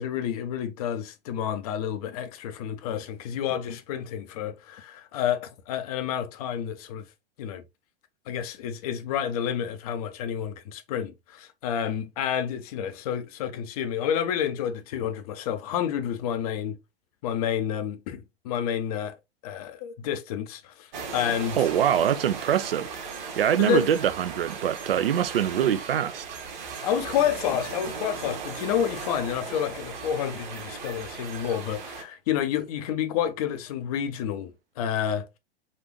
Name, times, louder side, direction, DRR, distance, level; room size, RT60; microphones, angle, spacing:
voice 1, 0.0-7.0 7.4-7.6 8.3-16.8 17.2-19.2 19.4-21.6 23.6-23.9 26.8-35.3, left 9 dB, 35° left, 0.6 m, -29 dB
sound 1, 20.9-32.0, right 5 dB, 45° right, 1.1 m, -37 dB
voice 2, 21.6-22.9 23.4-26.3, right 10 dB, 60° right, 0.5 m, -24 dB
4.1 x 2.5 x 3.0 m
figure-of-eight pair, 105°, 32 cm